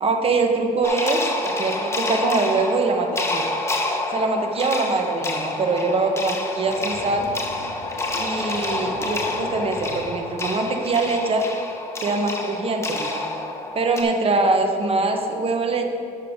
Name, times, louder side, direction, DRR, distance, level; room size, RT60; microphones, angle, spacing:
voice 1, 0.0-3.5 4.1-7.3 8.1-11.5 12.0-13.2 13.7-15.8, right 3 dB, 35° right, 5 dB, 0.9 m, -23 dB
sound 1, 0.8-14.0, left 2 dB, 15° left, 0.9 m, -28 dB
sound 2, 6.6-10.0, left 2 dB, 80° left, 1.6 m, -38 dB
10.5 x 6.6 x 3.6 m, 2.7 s
cardioid pair, 110°, 17 cm